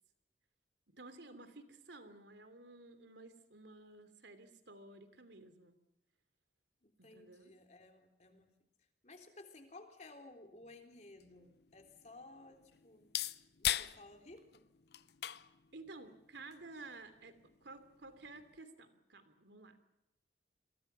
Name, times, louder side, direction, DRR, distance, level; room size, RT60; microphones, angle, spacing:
voice 1, 0.9-5.7 7.0-7.5 15.7-17.3 17.6-19.8, right 3 dB, 80° right, 10 dB, 3.1 m, -53 dB
voice 2, 6.8-8.5 9.0-13.1 13.6-14.7, left 2 dB, 40° left, 5 dB, 3.7 m, -56 dB
sound 1, 10.6-18.6, left 12 dB, 65° left, 0.7 m, -43 dB
28.5 x 22.5 x 5.8 m, 0.87 s
head